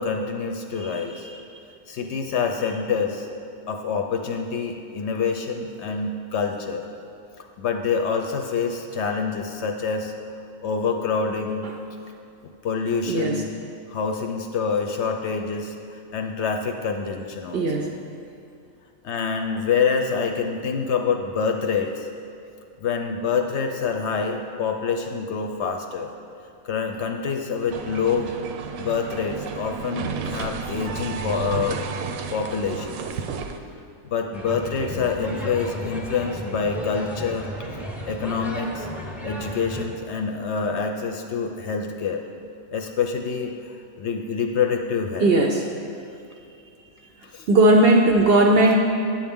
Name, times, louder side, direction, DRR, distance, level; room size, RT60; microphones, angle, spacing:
voice 1, 0.0-1.3 1.9-3.3 3.7-6.8 7.6-10.1 10.6-11.7 12.6-13.5 13.9-17.9 19.0-22.1 22.8-26.1 26.6-28.4 28.8-31.8 32.3-33.1 34.0-37.5 38.1-38.9 39.2-42.2 42.7-45.3 47.3-47.5, left 5 dB, 65° left, 4 dB, 0.8 m, -26 dB
voice 2, 0.8-1.4 13.1-13.4 17.5-17.9 45.2-45.7 47.5-48.8, right 2 dB, 60° right, 2 dB, 0.6 m, -18 dB
sound 1, 27.7-33.6, right 6 dB, 85° right, 1.0 m, -32 dB
sound 2, 34.3-39.9, equal, ahead, 0.5 m, -34 dB
8.7 x 7.7 x 3.6 m, 2.5 s
omnidirectional pair, 1.4 m